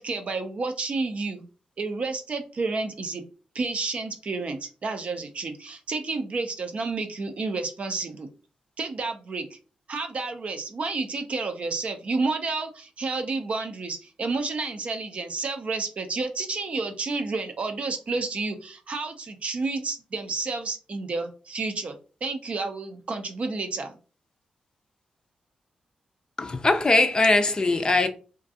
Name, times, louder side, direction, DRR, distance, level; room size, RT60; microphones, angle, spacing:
voice 1, 0.0-1.5 1.8-3.2 3.5-8.3 8.8-9.6 9.9-22.0 22.2-23.9, right 3 dB, 50° right, 0.5 m, -30 dB
voice 2, 26.4-28.1, left 2 dB, 30° left, 0.4 m, -21 dB
2.4 x 2.2 x 2.6 m
cardioid pair, 65°, 3 cm